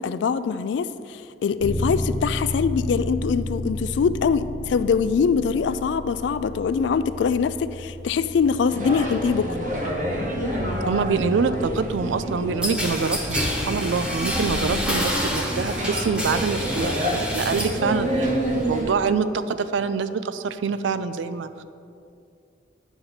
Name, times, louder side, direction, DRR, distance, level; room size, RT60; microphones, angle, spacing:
voice 1, 0.0-9.6 18.5-18.7, left 6 dB, 75° left, 13 dB, 0.3 m, -23 dB
Bass guitar, 1.6-11.4, left 1 dB, 55° left, 1.0 m, -33 dB
sound 1, 8.7-18.9, equal, 40° right, 0.9 m, -28 dB
voice 2, 10.9-17.1 17.3-21.6, right 5 dB, 85° right, 12 dB, 0.4 m, -25 dB
sound 2, 12.6-17.8 18.2-18.8, equal, 5° right, 0.8 m, -28 dB
10.0 x 6.0 x 4.0 m, 2.5 s
head